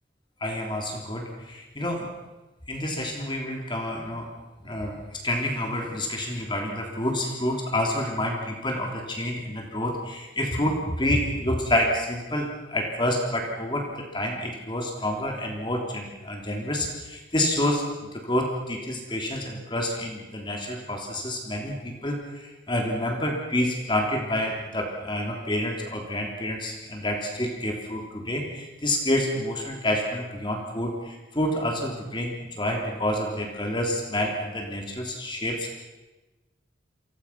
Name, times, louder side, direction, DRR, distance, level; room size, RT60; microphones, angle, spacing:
voice 1, 0.4-2.1 2.7-4.3 4.6-35.8, left 1 dB, 25° left, 1 dB, 3.2 m, -28 dB
30.0 x 24.5 x 6.0 m, 1.1 s
head